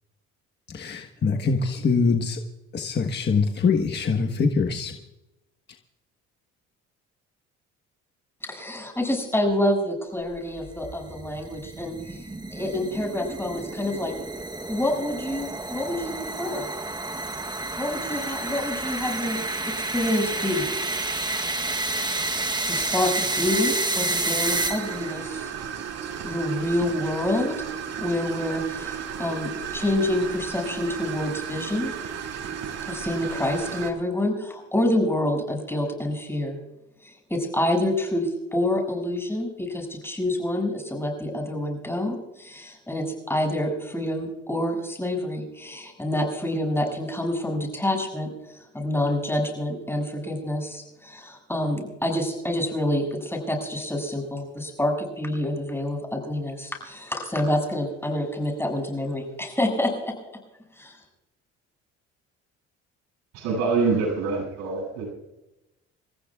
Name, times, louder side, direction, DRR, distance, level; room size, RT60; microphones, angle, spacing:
voice 1, 0.7-2.4 2.7-4.9, left 4 dB, 35° left, 3 dB, 1.4 m, -23 dB
voice 2, 8.4-12.2 12.5-14.1 14.7-16.7 17.7-19.4 19.6-20.7 22.7-25.5 26.2-27.6 28.0-31.9 32.9-36.6 37.0-60.1 60.8-61.0, left 1 dB, 10° left, 2 dB, 6.7 m, -27 dB
sound 1, 10.4-25.2, right 2 dB, 15° right, 1.1 m, -30 dB
sound 2, 24.4-33.9, right 8 dB, 60° right, 2.6 m, -34 dB
voice 3, 63.3-65.1, right 4 dB, 85° right, 0 dB, 7.1 m, -25 dB
29.0 x 14.5 x 2.4 m, 0.95 s
cardioid pair, 85°, 29 cm